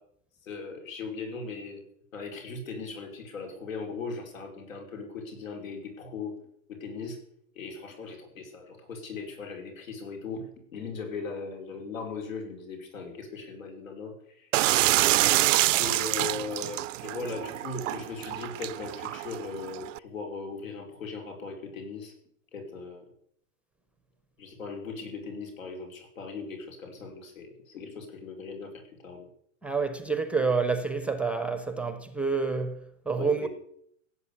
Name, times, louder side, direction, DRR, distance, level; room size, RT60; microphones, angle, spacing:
voice 1, 0.4-1.8 2.1-6.4 6.7-7.2 7.6-14.5 15.8-22.1 22.5-23.1 24.4-29.3 33.1-33.5, left 4 dB, 90° left, 5.4 m, -39 dB
sound 1, 14.5-20.0, right 16 dB, 70° right, 0.5 m, -26 dB
voice 2, 29.6-33.5, right 4 dB, 5° right, 0.6 m, -28 dB
16.0 x 8.5 x 8.4 m
hypercardioid pair, 150°, 39 cm